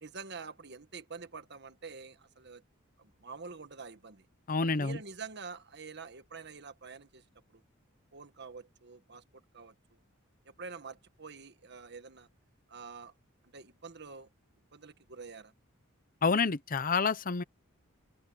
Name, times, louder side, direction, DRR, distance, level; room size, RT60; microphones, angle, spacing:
voice 1, 0.0-2.6 3.0-4.3 4.7-7.2 7.5-7.6 8.1-9.2 9.5-9.7 10.5-12.3 12.7-13.1 13.5-14.3 14.7-15.5, right 5 dB, 55° right, 1.5 m, -46 dB
voice 2, 4.5-5.0 16.2-17.4, left 4 dB, 45° left, 0.8 m, -28 dB
head